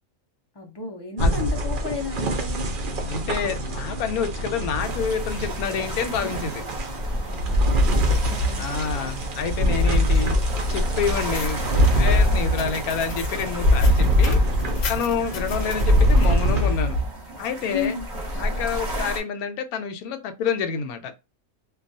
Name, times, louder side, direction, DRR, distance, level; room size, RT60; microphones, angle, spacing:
voice 1, 0.5-2.7 7.2-8.7 15.1-15.5 17.7-18.1, left 4 dB, 40° left, 0.3 m, -33 dB
sound 1, 1.2-17.1, equal, 60° right, 0.5 m, -23 dB
voice 2, 3.1-6.6 8.6-10.4 10.7-14.4 14.9-17.0 17.4-17.9 18.4-21.1, left 6 dB, 90° left, 1.1 m, -28 dB
sound 2, 4.8-19.2, equal, 35° right, 0.8 m, -33 dB
sound 3, 11.2-16.3, left 6 dB, 65° left, 0.9 m, -38 dB
2.3 x 2.3 x 2.6 m
omnidirectional pair, 1.5 m